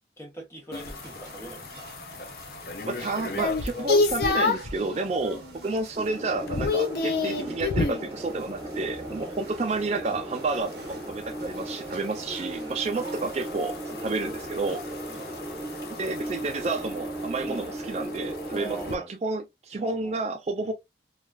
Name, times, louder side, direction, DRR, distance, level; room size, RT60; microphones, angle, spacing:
voice 1, 0.2-1.7 9.2-9.4 12.6-12.8 13.9-14.1 15.1-15.4 15.8-15.9 16.6-16.9 17.4-17.6 18.5-19.1 19.7-20.2 20.6-20.7, right 1 dB, 15° left, 0.8 m, -43 dB
sound 1, 0.7-4.8 5.3-5.7 6.0-8.1 10.6-19.0, left 3 dB, 55° left, 0.5 m, -31 dB
sound 2, 0.7-16.7, right 3 dB, 65° right, 0.9 m, -49 dB
voice 2, 2.8-13.8 14.0-14.8 15.9-20.7, right 3 dB, 40° right, 0.3 m, -30 dB
sound 3, 5.9-18.9, right 1 dB, 15° right, 0.9 m, -37 dB
3.1 x 2.3 x 2.3 m
head